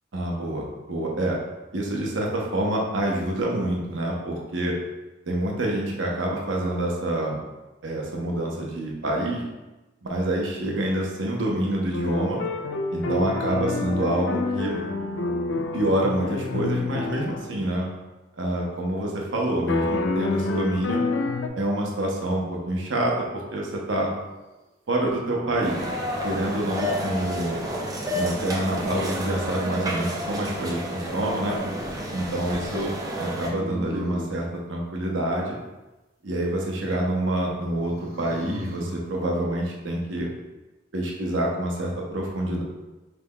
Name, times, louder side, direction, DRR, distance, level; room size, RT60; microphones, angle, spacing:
voice 1, 0.1-1.4 1.7-4.8 5.3-7.4 7.8-9.4 10.0-12.4 12.9-14.8 15.7-17.9 18.4-21.0 21.6-24.1 24.9-25.9 26.2-27.7 28.1-31.6 32.1-32.9 33.2-35.5 36.2-40.3 40.9-42.6, right 1 dB, 85° right, -1 dB, 0.8 m, -27 dB
sound 1, 11.9-17.5 19.7-21.5, left 3 dB, 70° left, 0.4 m, -28 dB
sound 2, 25.6-33.5, equal, 20° right, 0.5 m, -30 dB
sound 3, 28.7-29.6 33.4-34.4 37.8-39.0, equal, 50° right, 0.9 m, -36 dB
5.4 x 3.4 x 2.2 m, 1.1 s
head